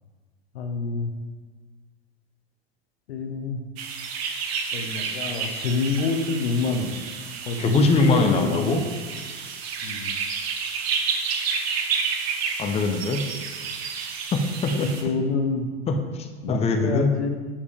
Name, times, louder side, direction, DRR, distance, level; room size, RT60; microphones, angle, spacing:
voice 1, 0.5-1.1 3.1-3.6 4.7-6.9 7.4-8.8 9.8-10.1 14.7-15.7 16.4-17.3, left 4 dB, 80° left, 5 dB, 0.8 m, -27 dB
sound 1, 3.8-15.0, right 6 dB, 70° right, 0.9 m, -30 dB
voice 2, 7.6-8.8 12.6-13.2 14.3-15.1 15.9-17.1, left 3 dB, 20° left, 4 dB, 0.6 m, -23 dB
7.0 x 4.9 x 3.3 m, 1.4 s
hypercardioid pair, 105°, 32 cm